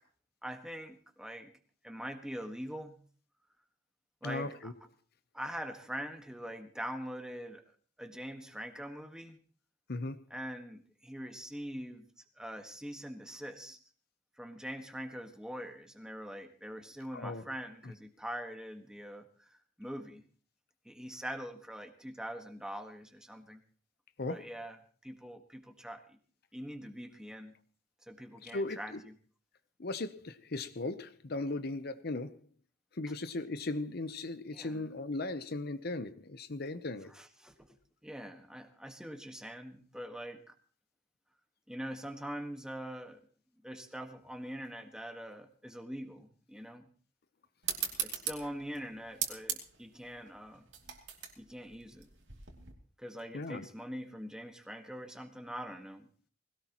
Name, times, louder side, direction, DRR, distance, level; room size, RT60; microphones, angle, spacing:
voice 1, 0.4-1.5 1.8-3.0 4.2-4.7 5.3-7.6 8.0-9.4 10.3-12.1 12.4-13.8 14.4-20.2 20.8-23.6 24.3-24.8 25.0-26.2 26.5-27.6 28.1-29.2 34.5-34.9 37.1-37.7 38.0-40.5 41.7-43.2 43.6-46.9 48.0-50.7 51.4-52.1 53.0-56.1, equal, 5° right, 1.5 m, -43 dB
voice 2, 4.2-4.7 9.9-10.2 17.1-17.4 24.2-24.5 28.4-29.0 29.8-32.4 32.9-37.1 53.3-53.7, left 2 dB, 55° left, 0.8 m, -37 dB
sound 1, 47.6-52.7, right 9 dB, 70° right, 2.8 m, -39 dB
20.5 x 17.5 x 3.0 m
head